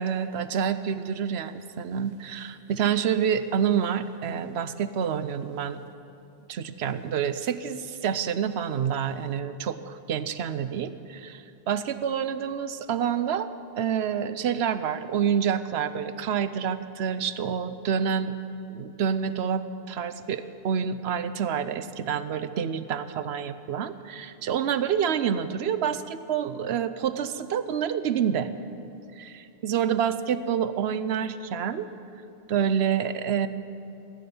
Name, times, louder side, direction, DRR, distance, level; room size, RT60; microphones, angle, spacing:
voice 1, 0.0-5.8 6.5-13.5 13.8-18.3 18.7-28.5 29.2-31.9 32.5-33.5, right 8 dB, 85° right, 13 dB, 1.0 m, -28 dB
15.5 x 10.5 x 8.6 m, 2.6 s
omnidirectional pair, 1.1 m